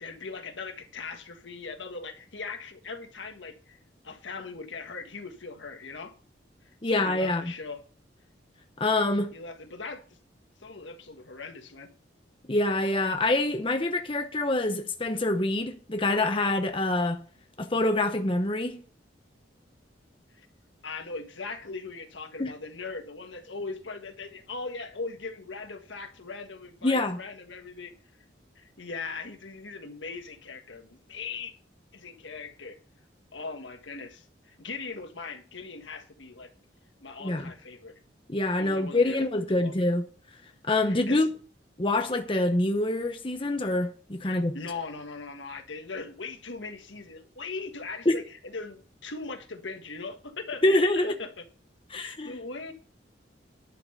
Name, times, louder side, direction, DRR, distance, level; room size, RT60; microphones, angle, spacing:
voice 1, 0.0-3.8 4.0-6.1 6.8-7.8 9.3-10.0 10.6-11.9 20.3-20.5 20.8-27.9 28.5-31.5 31.9-32.8 33.3-36.5 37.0-37.9 38.6-39.2 39.5-39.7 40.9-41.3 44.2-51.4 51.9-52.7, left 4 dB, 90° left, 1.6 m, -39 dB
voice 2, 6.8-7.5 8.8-9.3 12.5-17.2 17.6-18.8 22.4-22.5 26.8-27.2 37.2-37.5 38.3-40.1 40.7-41.3 41.8-44.6 48.1-48.2 50.6-51.1 51.9-52.4, left 2 dB, 30° left, 0.9 m, -26 dB
11.0 x 5.8 x 6.7 m
head